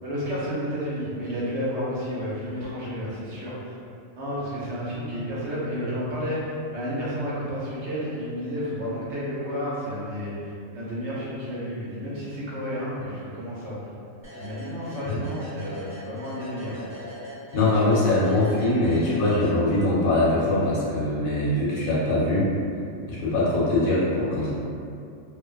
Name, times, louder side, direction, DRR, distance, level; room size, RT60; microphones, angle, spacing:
voice 1, 0.0-3.8 4.1-13.9 14.4-16.8 24.4-24.5, equal, 65° right, -8 dB, 0.8 m, -31 dB
sound 1, 14.2-20.0, equal, 10° right, 0.9 m, -41 dB
voice 2, 17.5-22.5 23.1-24.5, left 2 dB, 90° left, -8 dB, 1.2 m, -22 dB
2.5 x 2.1 x 2.3 m, 2.5 s
omnidirectional pair, 1.4 m